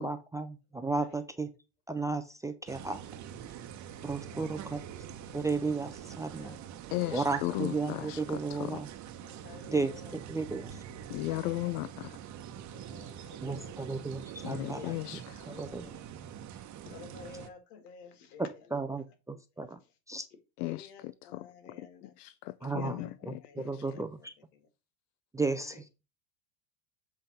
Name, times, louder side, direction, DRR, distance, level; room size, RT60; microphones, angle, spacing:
voice 1, 0.0-1.5 1.9-3.0 4.0-4.8 5.3-6.5 7.1-8.9 9.7-10.7 13.4-14.9 15.5-16.0 18.7-19.8 20.1-20.2 22.6-24.3 25.3-26.0, right 3 dB, 10° right, 0.4 m, -34 dB
sound 1, 2.7-17.5, right 9 dB, 40° right, 1.0 m, -45 dB
voice 2, 3.8-5.1 5.8-5.9 6.2-7.2 9.2-10.2 11.3-11.7 12.4-13.9 14.7-15.1 15.4-16.4 16.8-18.8 19.8-19.9 20.6-22.1 22.6-24.7 25.4-25.8, left 6 dB, 90° left, 2.2 m, -52 dB
voice 3, 6.9-8.8 11.1-12.2 14.4-15.2 20.6-21.5 22.0-23.8, left 18 dB, 75° left, 0.6 m, -36 dB
7.9 x 3.4 x 5.6 m
supercardioid pair, 125°, 46 cm